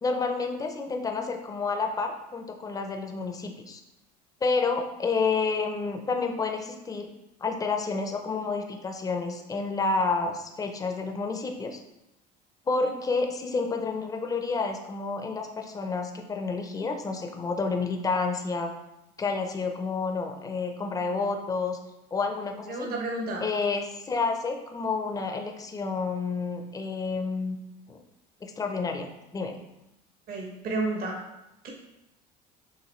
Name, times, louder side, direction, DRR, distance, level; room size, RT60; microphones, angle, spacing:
voice 1, 0.0-3.8 4.4-7.1 7.4-11.8 12.7-18.7 19.2-21.8 22.1-22.9 23.4-27.6 27.9-28.0 28.4-29.6, left 4 dB, 20° left, 4 dB, 0.6 m, -29 dB
voice 2, 22.7-23.4 30.3-31.2 31.6-31.7, right 2 dB, 50° right, 0 dB, 1.1 m, -31 dB
6.5 x 2.6 x 3.1 m, 0.89 s
supercardioid pair, 95°, 20 cm